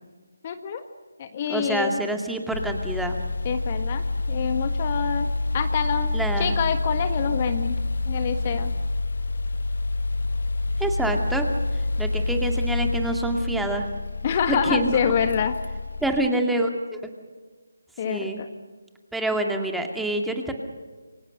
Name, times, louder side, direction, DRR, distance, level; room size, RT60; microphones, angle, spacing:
voice 1, 0.4-0.8 1.2-2.0 3.4-5.3 5.5-7.8 8.0-8.7 14.2-15.5 18.0-18.5, left 7 dB, 30° left, 8 dB, 1.5 m, -26 dB
voice 2, 1.5-3.2 6.1-6.5 10.8-11.5 12.0-13.9 14.5-14.9 16.0-17.1 18.0-18.4 19.1-20.5, right 1 dB, ahead, 3 dB, 2.3 m, -26 dB
sound 1, 2.5-16.3, left 2 dB, 65° left, 1.1 m, -27 dB
28.5 x 24.0 x 6.6 m, 1.4 s
figure-of-eight pair, 160°, 0 cm